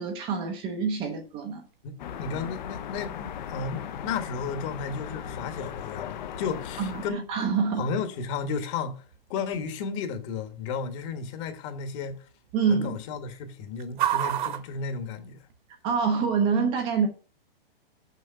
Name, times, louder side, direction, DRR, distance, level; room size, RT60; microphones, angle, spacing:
voice 1, 0.0-1.7 6.8-7.9 12.5-13.0 15.8-17.1, right 5 dB, 20° right, 0.7 m, -26 dB
sound 1, 1.0-15.8, right 12 dB, 55° right, 1.4 m, -39 dB
voice 2, 1.8-7.3 7.8-9.0 9.3-12.2 12.7-15.4, left 5 dB, 30° left, 1.3 m, -33 dB
sound 2, 2.0-7.1, left 9 dB, 50° left, 0.9 m, -37 dB
6.5 x 6.1 x 5.6 m
hypercardioid pair, 160°, 30 cm